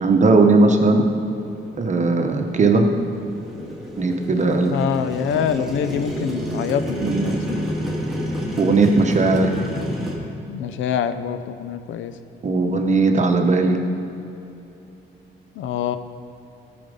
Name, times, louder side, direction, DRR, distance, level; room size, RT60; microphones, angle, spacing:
voice 1, 0.0-1.0 1.8-2.9 4.0-4.7 7.0-7.4 8.6-9.5 12.4-13.8, right 3 dB, 35° right, 4 dB, 1.1 m, -17 dB
Motorcycle, 0.8-10.2, equal, ahead, 2.1 m, -30 dB
voice 2, 4.7-7.7 10.5-12.1 15.6-16.0, left 8 dB, 80° left, 11 dB, 0.5 m, -25 dB
13.5 x 5.1 x 5.3 m, 2.8 s
cardioid pair, 90°, 20 cm